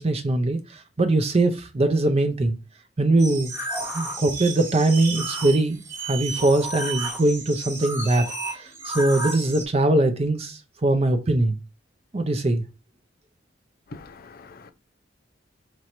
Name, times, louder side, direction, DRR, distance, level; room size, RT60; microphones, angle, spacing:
voice 1, 0.0-2.6 3.0-3.5 3.9-8.3 8.5-11.6 12.1-12.6, right 2 dB, 35° right, 0.5 m, -22 dB
sound 1, 3.2-9.7, right 2 dB, 15° right, 1.1 m, -32 dB
voice 2, 13.9-14.7, left 3 dB, 50° left, 0.5 m, -43 dB
5.1 x 3.1 x 2.9 m
head